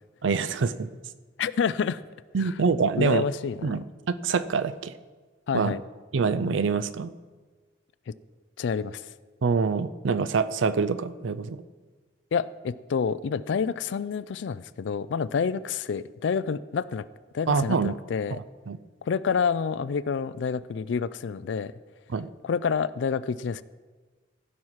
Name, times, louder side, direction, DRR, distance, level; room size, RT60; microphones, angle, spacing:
voice 1, 0.2-0.9 2.3-3.2 3.6-4.9 5.5-5.7 6.1-7.1 9.4-11.6 17.5-17.9 18.3-18.8 22.1-22.3, right 5 dB, 90° right, 13 dB, 0.5 m, -25 dB
voice 2, 1.4-2.0 2.4-2.5 3.0-3.8 5.5-5.8 8.1-8.2 8.6-9.1 12.3-17.1 17.3-18.4 19.0-21.7 22.4-23.6, left 6 dB, 75° left, 17 dB, 0.4 m, -28 dB
15.5 x 5.7 x 4.7 m, 1.4 s
head